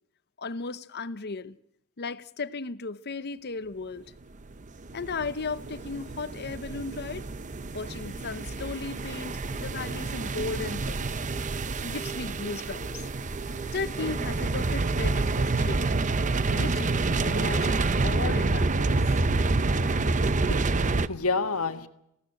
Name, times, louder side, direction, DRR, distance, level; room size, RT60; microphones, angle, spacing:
voice 1, 0.4-1.6 2.0-4.0 4.9-7.3 7.7-11.1 11.8-13.0 13.7-15.8 16.5-16.9 17.2-17.8 18.0-19.1, left 4 dB, 50° left, 0.8 m, -35 dB
sound 1, 4.6-21.1, right 3 dB, 35° right, 0.7 m, -28 dB
sound 2, 8.3-14.4, right 5 dB, 10° right, 3.4 m, -46 dB
voice 2, 20.4-21.9, left 4 dB, 70° left, 1.6 m, -30 dB
19.5 x 16.5 x 8.9 m
head